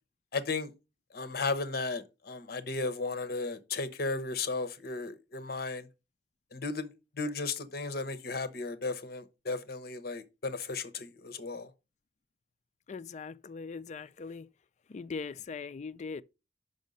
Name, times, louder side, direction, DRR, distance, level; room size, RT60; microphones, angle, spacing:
voice 1, 0.3-0.7 1.1-5.9 6.5-6.9 7.2-11.7, left 3 dB, 60° left, 0.9 m, -35 dB
voice 2, 12.9-14.5 14.9-16.2, left 5 dB, 40° left, 0.4 m, -40 dB
5.6 x 5.2 x 5.3 m
head